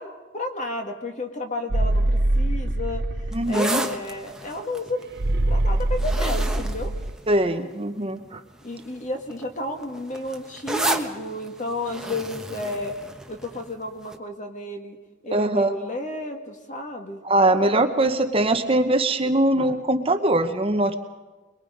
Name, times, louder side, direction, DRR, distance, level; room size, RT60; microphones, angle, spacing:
voice 1, 0.0-3.0 3.5-5.0 5.5-6.9 8.6-12.9 13.3-15.0 15.2-17.2, left 1 dB, 40° left, 4 dB, 2.1 m, -32 dB
sound 1, 1.7-3.5 5.2-7.2, right 1 dB, 60° right, 0.8 m, -23 dB
sound 2, 3.3-7.8 8.5-8.8 9.1-13.7 14.1-14.2, right 1 dB, 5° right, 1.1 m, -32 dB
voice 2, 3.3-3.8 7.3-8.4 15.3-15.7 17.2-20.9, right 1 dB, 30° right, 7 dB, 1.0 m, -21 dB
23.0 x 22.5 x 5.3 m, 1.3 s
head